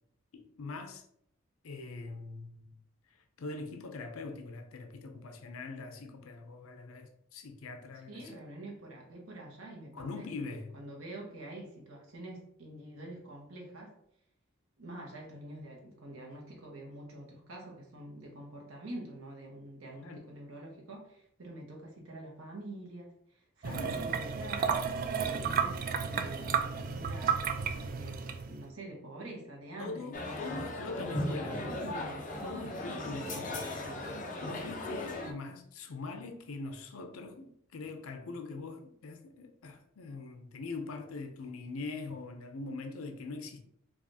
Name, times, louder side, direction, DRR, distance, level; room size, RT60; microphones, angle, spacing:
voice 1, 0.3-1.1 1.6-2.8 3.1-8.4 9.9-10.7 20.0-20.2 23.6-24.0 29.8-31.6 32.4-33.7 34.4-43.6, left 3 dB, 85° left, 0.5 m, -42 dB
voice 2, 8.1-14.0 14.8-24.8 25.2-30.4 31.0-34.1, right 1 dB, 85° right, 1.0 m, -46 dB
sound 1, 23.6-28.7, right 6 dB, 45° right, 0.3 m, -32 dB
sound 2, 30.1-35.3, left 1 dB, 40° left, 0.5 m, -37 dB
4.8 x 2.4 x 2.7 m
head